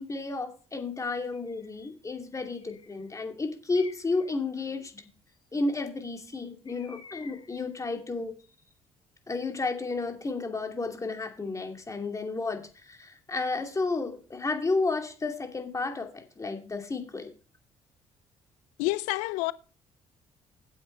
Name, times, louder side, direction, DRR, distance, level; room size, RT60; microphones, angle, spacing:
voice 1, 0.0-5.0 5.5-8.3 9.3-17.3, left 3 dB, 25° left, 2.5 m, -32 dB
Bird, 1.3-1.8 2.5-3.1 3.7-4.3 6.7-7.7, left 5 dB, 45° left, 2.5 m, -52 dB
voice 2, 18.8-19.5, left 20 dB, 85° left, 0.4 m, -28 dB
9.4 x 7.8 x 4.5 m
supercardioid pair, 65°, 12 cm